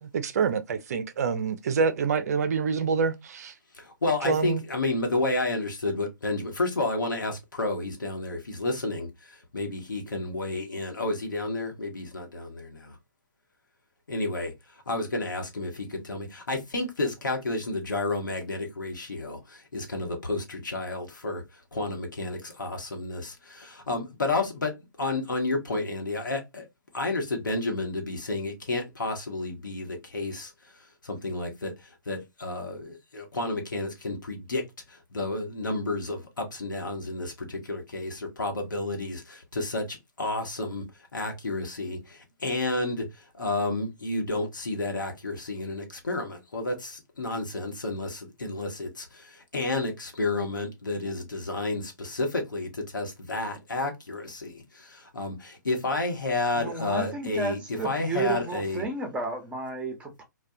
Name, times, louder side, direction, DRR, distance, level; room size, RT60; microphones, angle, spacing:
voice 1, 0.0-3.5 4.2-4.6, right 5 dB, 55° right, 0.4 m, -26 dB
voice 2, 3.7-13.0 14.1-24.7 25.0-26.7 26.9-34.6 34.9-40.8 41.1-57.6 57.8-58.8, left 2 dB, 75° left, 0.9 m, -31 dB
voice 3, 56.5-60.2, right 3 dB, 10° right, 0.7 m, -32 dB
2.3 x 2.2 x 2.6 m
figure-of-eight pair, 125°, 10 cm